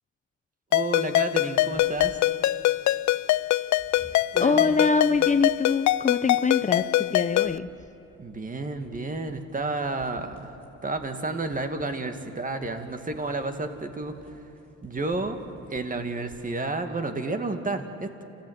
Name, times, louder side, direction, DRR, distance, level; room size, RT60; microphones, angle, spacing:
Ringtone, 0.7-7.6, left 16 dB, 70° left, 0.5 m, -24 dB
voice 1, 0.7-2.2 8.2-10.5 10.8-14.2 14.8-15.4 15.7-18.2, right 3 dB, 25° right, 7 dB, 2.0 m, -31 dB
sound 1, 1.7-16.6, equal, 5° left, 5.0 m, -47 dB
voice 2, 4.4-7.7, left 4 dB, 25° left, 9 dB, 0.8 m, -24 dB
28.5 x 15.0 x 9.3 m, 3.0 s
cardioid pair, 90°, 30 cm